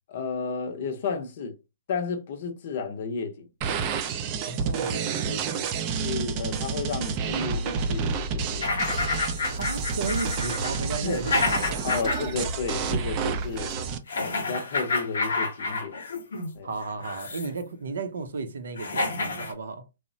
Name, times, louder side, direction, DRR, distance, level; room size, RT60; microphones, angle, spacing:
voice 1, 0.1-1.5 1.9-3.5 5.3-5.4 6.0-8.7 11.0-11.2 11.8-13.7 14.1-16.0 16.5-16.7, left 5 dB, 50° left, 0.6 m, -32 dB
sound 1, 3.6-14.0, right 6 dB, 30° right, 0.3 m, -30 dB
voice 2, 4.4-5.7 9.5-11.9 16.6-19.8, right 4 dB, 80° right, 0.6 m, -34 dB
sound 2, 7.2-13.9, equal, 45° right, 0.7 m, -36 dB
sound 3, 8.6-12.5 12.8-13.0 14.1-16.5 17.0-17.6 18.4-18.5 18.8-19.5, left 3 dB, 90° left, 0.7 m, -29 dB
3.0 x 2.0 x 2.6 m
hypercardioid pair, 160°, 0 cm